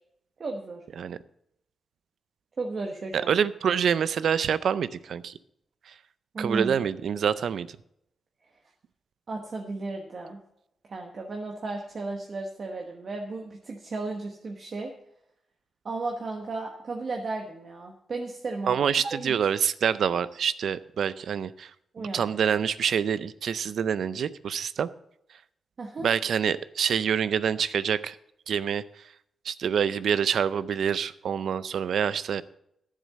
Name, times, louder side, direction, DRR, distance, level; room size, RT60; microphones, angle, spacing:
voice 1, 0.4-0.8 2.6-3.3 6.3-6.8 9.3-10.4 10.8-14.9 15.8-19.4 21.9-22.3 25.8-26.1, right 3 dB, 50° right, 2 dB, 1.2 m, -34 dB
voice 2, 3.1-5.3 6.4-7.7 18.7-21.7 22.1-24.9 26.0-28.2 28.5-28.8 29.5-32.4, right 7 dB, 75° right, 16 dB, 0.4 m, -26 dB
10.5 x 7.5 x 6.4 m, 0.77 s
cardioid pair, 105°, 0 cm